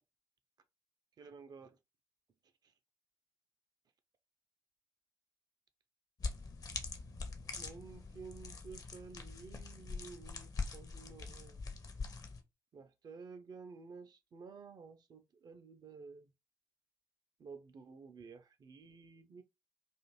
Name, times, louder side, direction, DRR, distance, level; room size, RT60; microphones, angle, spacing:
voice 1, 1.2-1.7 7.6-11.6 12.7-16.3 17.4-19.4, right 5 dB, 40° right, 0.5 m, -52 dB
sound 1, 6.2-12.4, left 4 dB, 40° left, 0.6 m, -43 dB
2.5 x 2.4 x 2.9 m
figure-of-eight pair, 40°, 10 cm